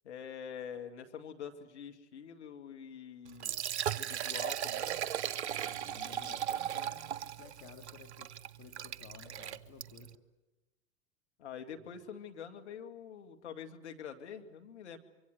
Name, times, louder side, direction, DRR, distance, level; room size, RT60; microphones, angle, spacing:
voice 1, 0.0-3.6 3.9-5.0 11.4-15.0, left 7 dB, 75° left, 5 dB, 2.2 m, -46 dB
Liquid, 3.3-10.1, right 10 dB, 75° right, 0.9 m, -37 dB
voice 2, 5.6-8.3 8.6-10.1 11.8-11.9, left 8 dB, 45° left, 3 dB, 2.7 m, -54 dB
25.0 x 24.0 x 8.1 m, 1.1 s
hypercardioid pair, 85°, 34 cm